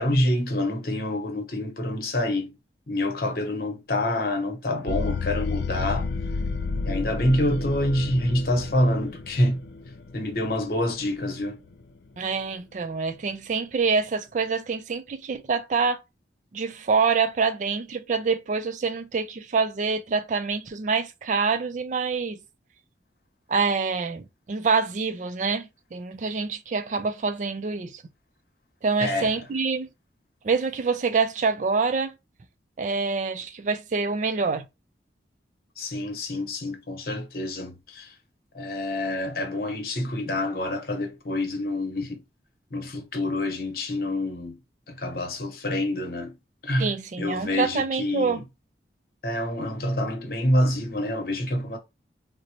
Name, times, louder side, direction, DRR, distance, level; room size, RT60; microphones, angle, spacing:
voice 1, 0.0-2.5 2.9-6.1 6.9-9.6 10.1-11.6 29.0-29.3 35.8-38.1 38.5-42.2 42.7-44.6 44.9-46.3 46.6-48.4 49.2-51.8, left 1 dB, 55° left, 1.0 m, -27 dB
sound 1, 4.9-11.8, left 4 dB, 75° left, 0.5 m, -31 dB
voice 2, 12.2-16.0 16.5-22.4 23.5-24.2 24.5-28.0 28.8-29.9 30.4-32.1 32.8-34.7 46.8-48.4, right 5 dB, 45° right, 0.4 m, -26 dB
3.9 x 2.1 x 2.9 m
head